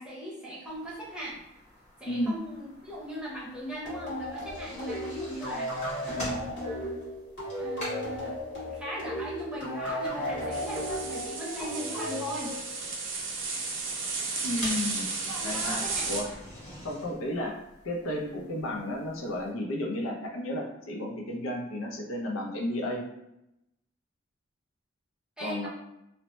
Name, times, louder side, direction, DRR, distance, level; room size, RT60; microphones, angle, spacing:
voice 1, 0.0-1.4 2.0-5.7 6.0-7.0 7.6-8.3 8.7-12.5 15.3-16.3 25.4-25.7, right 1 dB, 5° right, -6 dB, 0.7 m, -39 dB
sound 1, 0.7-19.5, equal, 35° left, 1.1 m, -47 dB
sound 2, 3.9-13.1, equal, 55° left, 1.4 m, -35 dB
sound 3, 10.5-16.2, right 4 dB, 70° right, 0.5 m, -34 dB
voice 2, 14.4-15.1 15.4-16.3 16.8-17.6 17.8-23.0 25.4-25.7, left 1 dB, 90° left, 1 dB, 0.6 m, -32 dB
2.8 x 2.0 x 3.0 m, 0.83 s
head